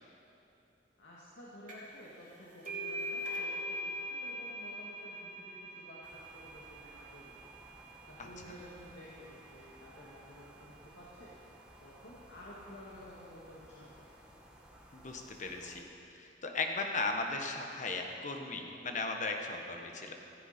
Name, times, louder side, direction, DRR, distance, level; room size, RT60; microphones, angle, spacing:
voice 1, 1.0-7.4 8.1-14.1, equal, 90° left, -7 dB, 2.2 m, -53 dB
sound 1, 1.7-2.0 2.3-9.6, equal, 45° right, 2.8 m, -42 dB
sound 2, 6.0-15.8, equal, 5° right, 1.5 m, -57 dB
voice 2, 14.9-15.9 16.1-20.1, left 3 dB, 45° left, 3 dB, 1.3 m, -37 dB
15.5 x 15.0 x 4.4 m, 2.8 s
head